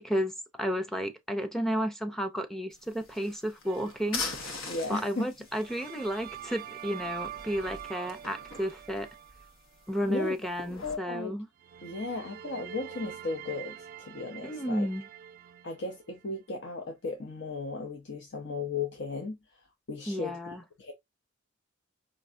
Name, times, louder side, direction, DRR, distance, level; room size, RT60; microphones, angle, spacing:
voice 1, 0.0-9.1 9.9-11.5 14.4-15.1 20.1-20.6, equal, ahead, 0.6 m, -32 dB
sound 1, 2.7-11.0, left 4 dB, 85° left, 1.0 m, -43 dB
sound 2, 3.6-4.5 5.5-9.9 11.6-16.4, right 10 dB, 45° right, 0.3 m, -45 dB
voice 2, 4.7-5.3 10.1-10.3 10.8-11.3 11.8-14.9 15.6-19.4 19.9-20.4 20.8-20.9, left 3 dB, 60° left, 0.7 m, -35 dB
4.5 x 2.7 x 2.6 m
head